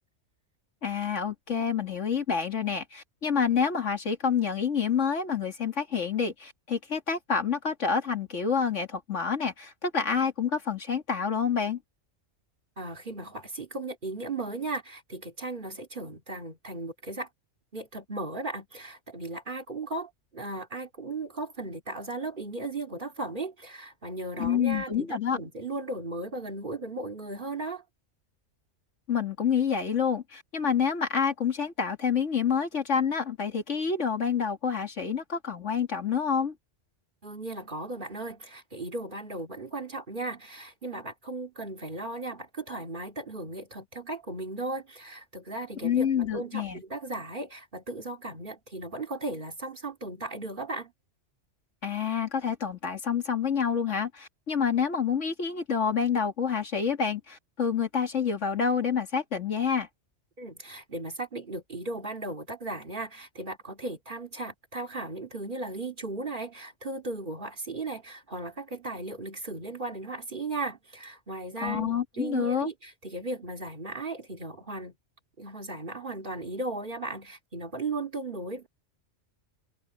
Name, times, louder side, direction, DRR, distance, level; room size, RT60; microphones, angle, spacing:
voice 1, 0.8-11.8 24.4-25.4 29.1-36.5 45.8-46.8 51.8-59.9 71.6-72.7, left 6 dB, 75° left, 2.5 m, -28 dB
voice 2, 12.8-17.3 17.7-27.8 37.2-50.9 60.4-74.9 75.4-78.7, right 2 dB, 40° right, 2.6 m, -36 dB
omnidirectional pair, 1.3 m